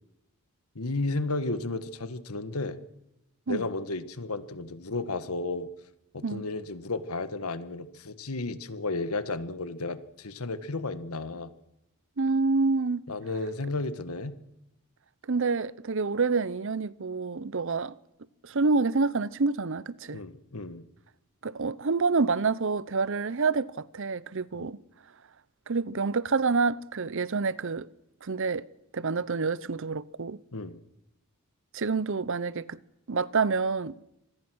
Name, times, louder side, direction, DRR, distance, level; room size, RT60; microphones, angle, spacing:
voice 1, 0.7-2.8 3.5-5.7 6.1-11.5 13.1-14.3 20.1-20.8 24.5-24.7 30.5-30.8, left 2 dB, 85° left, 1.6 m, -33 dB
voice 2, 12.2-13.0 15.3-17.9 18.4-20.2 21.4-24.8 25.7-27.9 28.2-28.6 28.9-30.4 31.7-32.8 33.1-33.9, right 4 dB, 60° right, 0.7 m, -27 dB
26.0 x 19.5 x 6.3 m
head